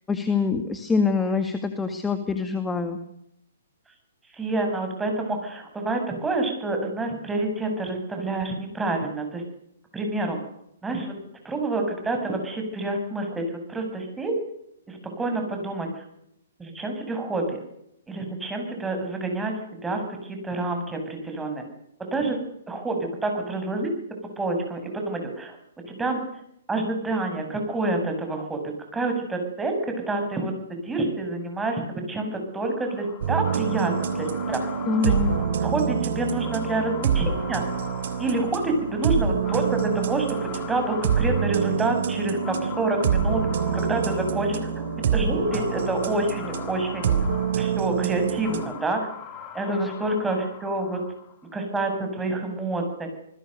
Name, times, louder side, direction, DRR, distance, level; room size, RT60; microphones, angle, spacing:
voice 1, 0.1-3.0 34.9-35.3 49.7-49.9, left 5 dB, 10° left, 7 dB, 2.1 m, -25 dB
voice 2, 4.3-9.4 9.9-10.4 10.8-11.1 11.4-13.4 13.7-14.3 14.9-16.0 16.6-17.6 18.1-19.5 19.8-20.0 20.3-21.6 22.0-22.4 22.7-23.9 24.4-25.6 25.9-26.2 26.7-28.6 28.9-34.6 35.0-35.1 35.6-37.6 38.2-40.3 40.5-43.4 43.7-47.2 47.5-49.0 49.5-51.0 51.5-53.1, right 2 dB, 10° right, 4 dB, 7.1 m, -28 dB
sound 1, 32.6-51.5, left 9 dB, 25° left, 3.9 m, -42 dB
sound 2, 33.2-48.6, right 7 dB, 60° right, 3.4 m, -26 dB
27.5 x 20.5 x 6.7 m, 0.78 s
hypercardioid pair, 130°, 0 cm